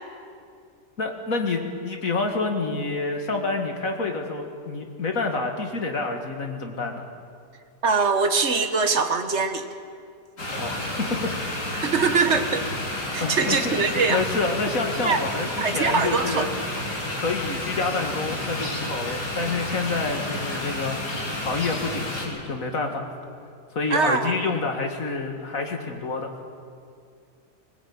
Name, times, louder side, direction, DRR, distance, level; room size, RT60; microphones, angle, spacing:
voice 1, 1.0-7.0 10.6-10.8 11.2-11.3 13.2-13.8 14.1-16.5 17.1-21.0 21.4-23.1 23.7-26.3, left 3 dB, 50° left, 3 dB, 2.4 m, -28 dB
voice 2, 7.8-9.7 11.8-12.6 13.1-14.2 15.0-15.2 15.6-16.5 23.9-24.3, right 4 dB, 45° right, 7 dB, 1.5 m, -22 dB
sound 1, 10.4-22.3, left 1 dB, 70° left, 4.6 m, -31 dB
21.0 x 20.5 x 8.8 m, 2.3 s
omnidirectional pair, 1.8 m